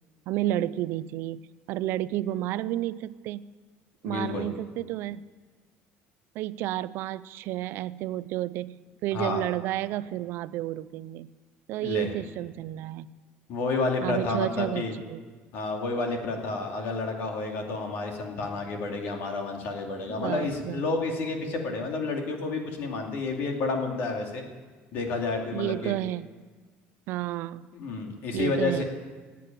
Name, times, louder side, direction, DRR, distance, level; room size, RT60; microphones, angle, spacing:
voice 1, 0.3-1.4 1.7-3.5 4.0-5.2 6.4-11.3 11.7-13.1 14.0-15.2 20.1-20.9 25.5-26.4 27.1-27.7 28.3-28.8, right 14 dB, 55° right, 17 dB, 0.4 m, -31 dB
voice 2, 4.0-4.5 9.1-9.4 11.8-12.1 13.5-14.9 15.5-24.4 24.9-26.0 27.7-28.8, left 3 dB, 50° left, 2 dB, 2.4 m, -30 dB
17.0 x 8.4 x 9.0 m, 1.4 s
cardioid pair, 175°, 5 cm